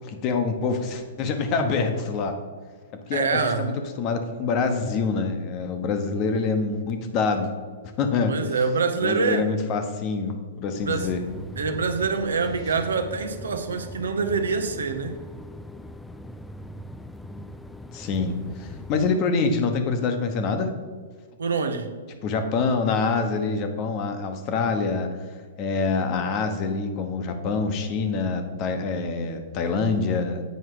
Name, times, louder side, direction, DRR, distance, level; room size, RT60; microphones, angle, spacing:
voice 1, 0.0-2.3 3.1-7.5 7.8-8.3 9.0-11.2 17.9-20.7 22.2-25.1 25.6-30.4, left 4 dB, 35° left, 6 dB, 1.0 m, -26 dB
voice 2, 3.1-3.7 8.3-9.5 10.8-11.1 11.6-15.2 21.4-21.9, right 5 dB, 80° right, 7 dB, 0.9 m, -25 dB
sound 1, 10.8-19.2, equal, 5° left, 0.3 m, -40 dB
8.1 x 4.8 x 4.8 m, 1.5 s
hypercardioid pair, 125°, 0 cm